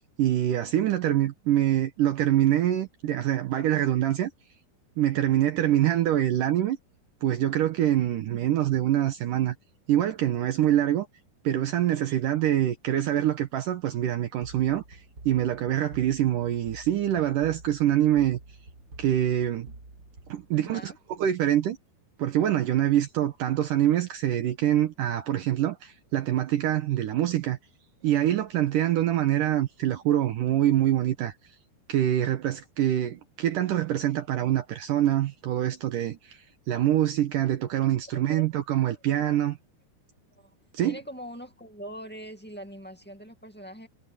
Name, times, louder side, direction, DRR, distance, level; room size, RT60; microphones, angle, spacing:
voice 1, 0.2-4.3 5.0-6.8 7.2-9.6 9.9-11.1 11.4-15.0 15.3-18.4 19.0-19.7 20.3-21.8 22.2-27.6 28.0-31.3 31.9-36.4 36.7-39.6 40.7-41.0, right 12 dB, 70° right, 2.3 m, -25 dB
sound 1, 14.4-21.0, right 2 dB, 25° right, 4.8 m, -48 dB
voice 2, 20.6-21.0 38.3-38.5 40.3-40.5 40.9-43.9, equal, 15° left, 0.3 m, -42 dB
omnidirectional pair, 4.6 m